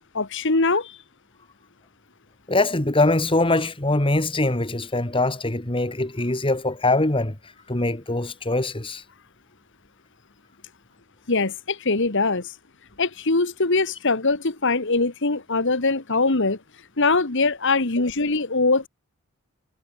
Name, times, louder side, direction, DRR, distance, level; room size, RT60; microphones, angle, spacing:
voice 1, 0.1-1.0 11.3-12.5 13.0-16.6 17.0-18.9, left 3 dB, 60° left, 1.8 m, -22 dB
voice 2, 2.5-7.4 7.7-9.0, left 2 dB, 25° left, 2.0 m, -22 dB
head